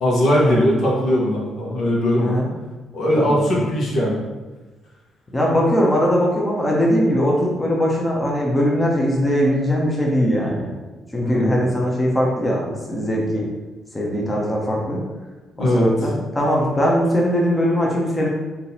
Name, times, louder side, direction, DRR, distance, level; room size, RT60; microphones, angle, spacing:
voice 1, 0.0-2.3 2.9-4.2 11.2-11.6 15.6-15.9, equal, 65° left, -3 dB, 1.2 m, -19 dB
voice 2, 5.3-10.7 11.1-13.5 13.9-15.0 15.6-18.3, equal, 15° left, -3 dB, 1.0 m, -20 dB
3.7 x 2.8 x 4.3 m, 1.2 s
cardioid pair, 90°, 0 cm